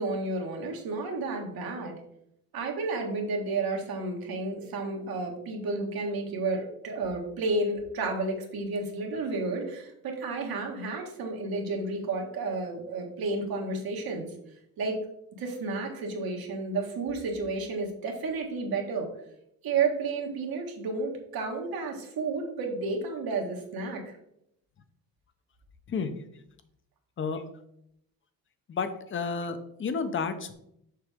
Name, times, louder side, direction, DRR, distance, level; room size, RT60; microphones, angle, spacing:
voice 1, 0.0-1.9 2.5-14.3 14.8-15.0 15.4-19.1 19.6-24.2, right 3 dB, 80° right, 1 dB, 1.7 m, -31 dB
voice 2, 28.7-30.5, left 5 dB, 35° left, 10 dB, 0.6 m, -31 dB
6.6 x 6.1 x 3.5 m, 0.74 s
wide cardioid pair, 170°, 35 cm